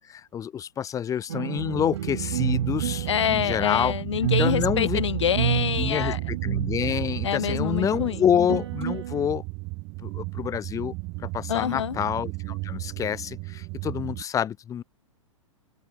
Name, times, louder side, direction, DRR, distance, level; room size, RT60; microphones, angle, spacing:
voice 1, 0.0-3.9 4.4-5.0 5.8-9.4 10.0-10.9 11.3-14.8, left 9 dB, 20° left, 3.1 m, -27 dB
sound 1, 1.3-9.3, right 11 dB, 55° right, 1.0 m, -30 dB
sound 2, 1.6-14.2, right 26 dB, 35° right, 3.8 m, -34 dB
voice 2, 3.1-6.2 7.2-8.2 11.5-12.0, left 9 dB, 60° left, 3.6 m, -26 dB
figure-of-eight pair, 105°, 17 cm